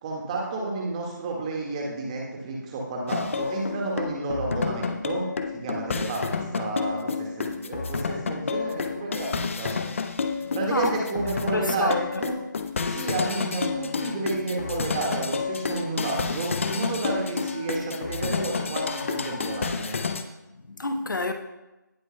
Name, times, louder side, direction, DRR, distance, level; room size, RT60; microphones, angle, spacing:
voice 1, 0.0-5.2 5.5-9.7 10.5-12.3 12.9-19.9, right 2 dB, 20° right, 1.8 m, -31 dB
sound 1, 3.1-20.2, left 5 dB, 40° left, 0.7 m, -30 dB
voice 2, 10.4-11.0 11.5-12.2 20.5-21.3, left 2 dB, 70° left, 1.0 m, -29 dB
17.5 x 8.0 x 2.3 m
figure-of-eight pair, 160°, 11 cm